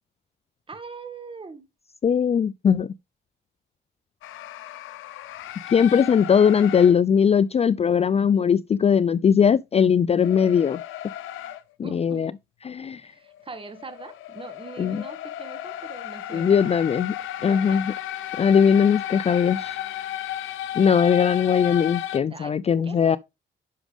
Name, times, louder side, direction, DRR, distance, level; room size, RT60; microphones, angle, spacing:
voice 1, 0.7-1.6 11.8-12.3 13.0-16.8 17.4-17.9 22.3-23.2, right 4 dB, 25° right, 1.9 m, -41 dB
voice 2, 2.0-2.9 5.7-10.8 11.8-12.3 12.7-13.0 14.8-15.0 16.3-17.1 17.4-17.9 18.4-19.8 20.7-23.2, left 7 dB, 30° left, 0.4 m, -20 dB
sound 1, 4.2-7.0 10.2-11.6 13.3-22.2, left 13 dB, 85° left, 0.9 m, -34 dB
10.0 x 6.2 x 3.5 m
cardioid pair, 90°, 20 cm